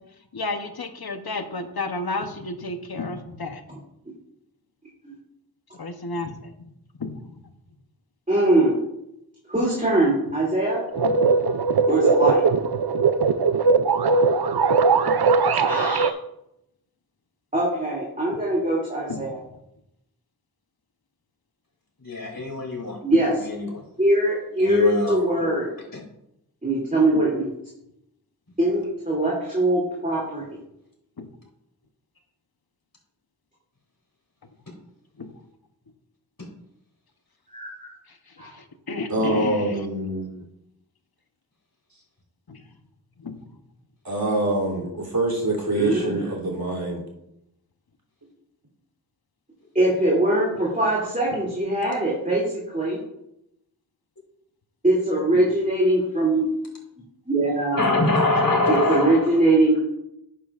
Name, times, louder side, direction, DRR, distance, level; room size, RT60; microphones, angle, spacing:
voice 1, 0.3-3.6 5.8-6.5 7.0-7.2 11.0-11.1 15.1-15.2 19.1-19.2 31.2-31.3 35.2-35.3 38.4-39.8 42.5-42.6 43.2-43.4, left 3 dB, 80° left, 7 dB, 0.9 m, -31 dB
voice 2, 8.3-8.8 9.5-10.8 11.9-12.4 15.6-16.1 17.5-19.4 23.0-23.4 24.0-25.7 26.6-27.5 28.6-30.4 37.5-38.0 38.4-38.5 45.7-46.2 49.7-53.0 54.8-56.5 57.3-57.8 58.7-59.8, right 1 dB, 20° right, -5 dB, 2.7 m, -22 dB
sound 1, 10.9-16.1, right 4 dB, 90° right, 0.5 m, -20 dB
voice 3, 22.0-23.0 23.4-23.8 24.6-25.5 25.9-26.0 36.4-36.5 57.8-59.5, left 2 dB, 60° left, -2 dB, 3.3 m, -24 dB
voice 4, 39.1-40.3 44.0-47.0, right 2 dB, 75° right, -4 dB, 3.1 m, -25 dB
11.5 x 9.1 x 2.5 m, 0.81 s
wide cardioid pair, 55°, 37 cm